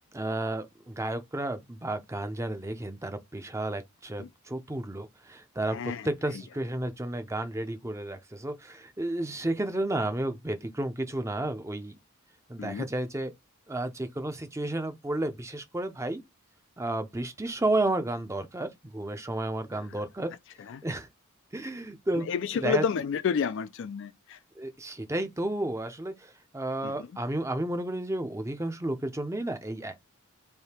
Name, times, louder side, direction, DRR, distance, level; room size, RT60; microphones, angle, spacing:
voice 1, 0.1-11.9 12.5-13.3 13.7-16.2 16.8-20.3 20.8-21.1 21.5-22.3 22.6-22.8 24.6-29.9, right 1 dB, 15° right, 0.6 m, -32 dB
voice 2, 5.7-6.1 12.6-12.8 19.7-19.8 20.7-20.8 22.1-24.4 26.8-26.9, left 6 dB, 60° left, 0.4 m, -30 dB
3.4 x 2.7 x 4.3 m
head